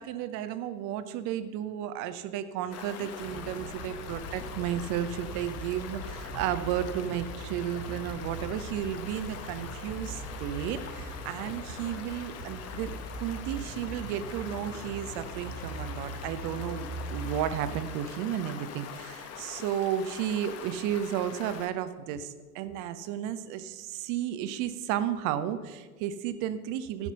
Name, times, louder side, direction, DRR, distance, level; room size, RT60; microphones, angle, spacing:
voice 1, 0.0-27.1, right 10 dB, 40° right, 12 dB, 0.9 m, -33 dB
Stream, 2.7-21.7, left 7 dB, 35° left, 1.1 m, -43 dB
sound 1, 3.2-17.8, right 2 dB, 85° left, 3.7 m, -41 dB
15.5 x 5.9 x 5.4 m, 1.4 s
figure-of-eight pair, 85°, 46 cm